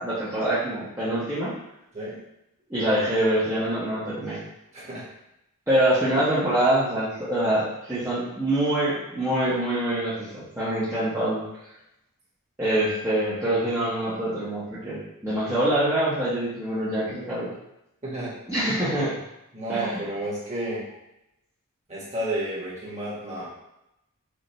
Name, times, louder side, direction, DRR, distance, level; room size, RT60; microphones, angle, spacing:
voice 1, 0.0-1.5 2.7-4.4 5.7-11.4 12.6-17.5 18.5-19.2 19.7-20.0, right 1 dB, 10° right, -11 dB, 0.9 m, -25 dB
voice 2, 4.7-5.1 18.0-18.3 19.5-20.9 21.9-23.5, right 1 dB, 30° right, -7 dB, 1.4 m, -31 dB
5.2 x 2.4 x 3.1 m, 0.86 s
head